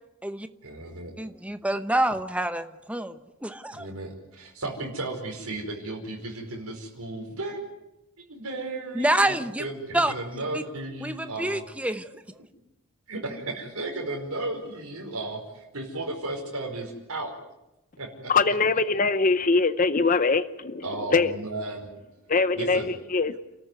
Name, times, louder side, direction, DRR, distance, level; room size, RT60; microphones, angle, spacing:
voice 1, 0.6-1.1 3.7-7.6 8.3-11.6 13.1-17.3 18.0-18.3 20.8-21.9 22.5-22.9, right 2 dB, 80° right, 0 dB, 5.0 m, -34 dB
voice 2, 1.2-3.9 8.9-9.6 9.9-10.1 10.5-10.6 11.0-12.2, right 1 dB, 5° right, 9 dB, 0.9 m, -27 dB
voice 3, 18.3-21.3 22.3-23.3, left 4 dB, 35° left, 12 dB, 0.7 m, -23 dB
29.0 x 14.0 x 9.5 m, 0.96 s
head